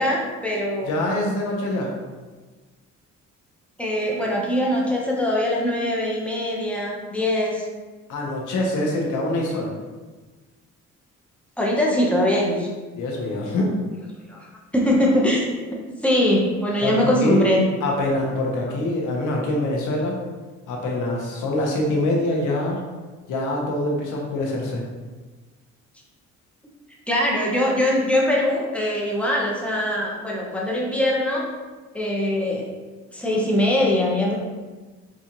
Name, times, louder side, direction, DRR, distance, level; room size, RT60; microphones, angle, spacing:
voice 1, 0.0-0.9 3.8-7.7 11.6-12.7 14.3-14.5 14.7-17.7 27.1-31.5 31.9-32.7 33.1-34.4, left 1 dB, 5° left, -3 dB, 0.8 m, -22 dB
voice 2, 0.9-1.9 8.1-9.7 13.0-13.7 16.8-17.5 17.8-20.2 20.7-22.8 23.3-24.8, left 1 dB, 80° left, -1 dB, 0.9 m, -24 dB
4.1 x 2.4 x 2.9 m, 1.3 s
cardioid pair, 90°, 30 cm